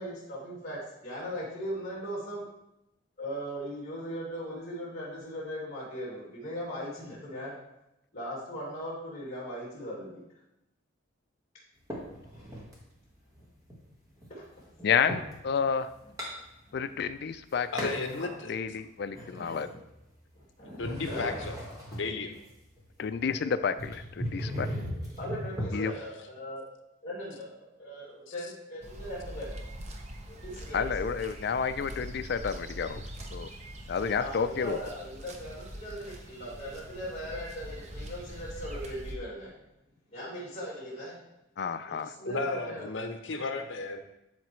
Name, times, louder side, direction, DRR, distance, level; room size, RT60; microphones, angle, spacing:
voice 1, 0.0-2.4 3.2-7.5 8.1-10.2 14.3-14.4 16.7-16.9 18.2-18.3 20.6-21.2 25.2-26.7 27.0-29.6 30.3-30.9 33.9-39.5 40.1-41.1 41.9-42.8, equal, 35° left, -5 dB, 2.5 m, -39 dB
sound 1, 11.9-12.8 13.3-15.4 15.8-17.0 17.3-18.2 18.6-20.4 20.7-25.7, equal, 15° right, 1.5 m, -38 dB
voice 2, 14.8-15.9 16.7-17.9 18.5-19.7 23.0-24.7 25.7-25.9 30.7-33.0 33.3-33.5 33.9-34.8 41.6-42.1, left 6 dB, 55° left, 11 dB, 0.3 m, -30 dB
voice 3, 17.7-18.5 20.8-21.6 21.9-22.3 25.7-25.9 42.2-44.0, left 3 dB, 70° left, 6 dB, 0.8 m, -34 dB
sound 2, 28.8-39.2, equal, 35° right, 0.7 m, -43 dB
12.0 x 4.0 x 3.1 m, 0.89 s
head